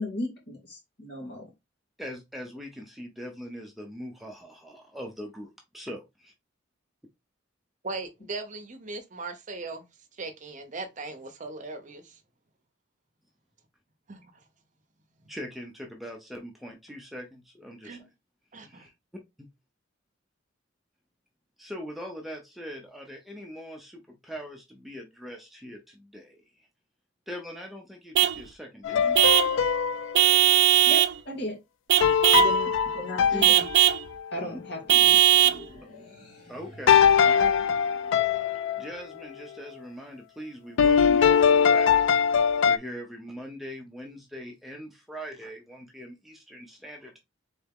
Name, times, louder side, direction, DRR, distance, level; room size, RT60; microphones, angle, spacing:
voice 1, 0.0-1.5 30.8-31.6 32.3-33.7 34.3-35.2, left 1 dB, 60° left, 2.2 m, -35 dB
voice 2, 2.0-5.5 5.7-6.0 15.3-18.1 18.6-18.9 21.6-26.4 27.3-29.2 33.3-33.5 36.5-37.7 38.1-38.4 38.8-42.0 42.6-47.2, equal, ahead, 0.7 m, -41 dB
voice 3, 7.8-9.8 10.2-12.2 14.1-14.3 17.8-18.1 18.5-18.9, right 3 dB, 40° right, 0.8 m, -38 dB
Vehicle horn car horn honking / Truck, 28.1-28.4 29.1-29.6 30.1-31.2 31.9-32.6 33.4-34.0 34.9-35.6, right 12 dB, 60° right, 0.3 m, -19 dB
sound 1, 28.8-30.4 32.0-34.2 36.9-38.9 40.8-42.8, left 7 dB, 75° left, 0.4 m, -21 dB
sound 2, 35.2-39.8, left 1 dB, 40° left, 2.3 m, -50 dB
4.0 x 3.5 x 3.5 m
head